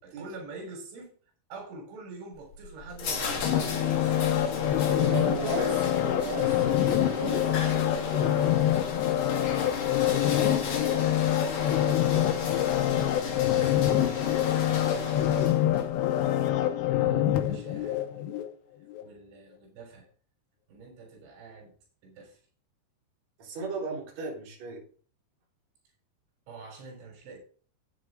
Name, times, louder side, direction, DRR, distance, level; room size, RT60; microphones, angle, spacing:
voice 1, 0.0-1.1 1.5-4.2 10.0-13.0 13.4-14.0 14.6-16.1 16.6-18.5 19.0-20.1 20.7-21.7 22.0-22.4 26.5-27.4, right 3 dB, 80° right, 1 dB, 6.1 m, -47 dB
sound 1, 2.3-15.9, left 4 dB, 50° left, 2.3 m, -35 dB
sound 2, 3.4-18.5 18.9-19.0, left 12 dB, 75° left, 3.0 m, -26 dB
voice 2, 4.6-8.3 14.7-15.1 23.4-24.8, right 4 dB, 40° right, -4 dB, 4.8 m, -36 dB
10.5 x 9.3 x 3.7 m, 0.42 s
omnidirectional pair, 5.3 m